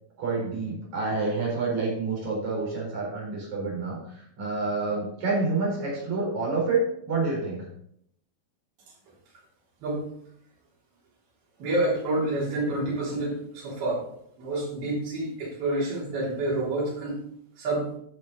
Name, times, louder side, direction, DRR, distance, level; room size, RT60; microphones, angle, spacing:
voice 1, 0.2-7.7, right 3 dB, 50° right, -4 dB, 5.6 m, -28 dB
voice 2, 11.6-14.1 14.4-17.2 17.6-17.9, right 2 dB, 85° right, -6 dB, 5.4 m, -28 dB
12.5 x 6.7 x 4.0 m, 0.70 s
omnidirectional pair, 4.2 m